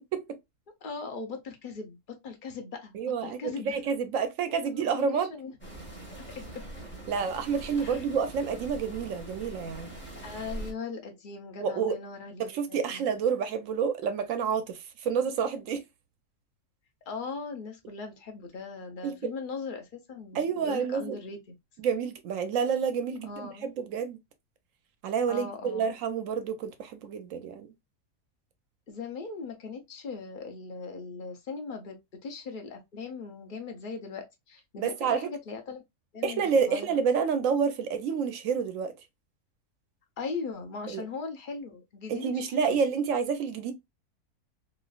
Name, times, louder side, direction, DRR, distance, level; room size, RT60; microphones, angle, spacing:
voice 1, 0.8-3.8 4.7-5.5 7.8-8.1 10.2-13.1 15.1-15.2 17.1-21.5 23.2-23.7 25.3-25.9 28.9-35.8 36.1-37.0 40.2-42.8, left 4 dB, 50° left, 0.6 m, -39 dB
voice 2, 2.9-5.3 7.1-9.9 11.6-12.0 12.4-15.8 19.0-19.1 20.3-21.2 21.8-24.2 25.0-27.7 34.8-35.3 36.2-38.9 40.9-41.0 42.1-43.7, right 6 dB, 65° right, 0.9 m, -29 dB
sound 1, 5.6-10.7, right 1 dB, 10° left, 0.9 m, -42 dB
3.1 x 2.5 x 2.3 m
omnidirectional pair, 1.6 m